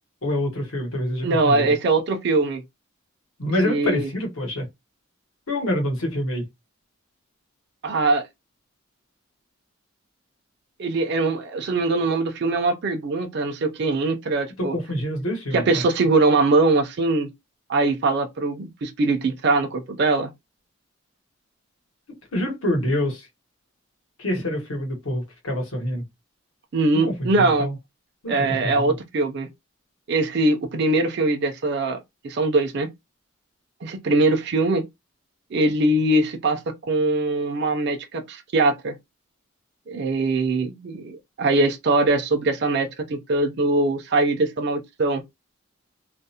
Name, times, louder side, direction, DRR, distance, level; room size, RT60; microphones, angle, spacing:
voice 1, 0.2-1.7 3.4-4.7 5.5-6.5 14.6-15.8 22.3-23.3 24.2-26.0 27.0-27.7 28.2-28.9, left 1 dB, 80° left, 1.0 m, -26 dB
voice 2, 1.2-2.6 3.6-4.1 7.8-8.2 10.8-14.8 15.5-17.3 17.7-20.3 26.7-27.7 28.3-29.5 30.1-32.0 32.2-32.9 33.8-34.8 35.5-39.0 39.9-45.2, right 2 dB, 50° right, 0.4 m, -22 dB
2.4 x 2.0 x 2.7 m
head